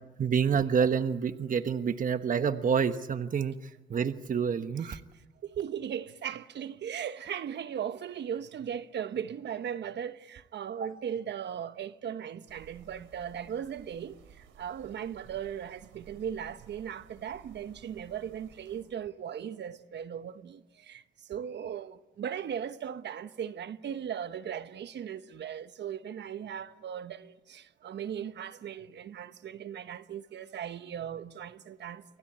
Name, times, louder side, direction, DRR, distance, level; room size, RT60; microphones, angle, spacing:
voice 1, 0.2-5.0 10.8-10.9, right 7 dB, 45° right, 1.2 m, -28 dB
voice 2, 5.4-32.0, right 9 dB, 60° right, 1.3 m, -38 dB
sound 1, 12.5-18.8, right 8 dB, 85° right, 5.1 m, -56 dB
28.0 x 24.0 x 8.8 m
cardioid pair, 90°, 20 cm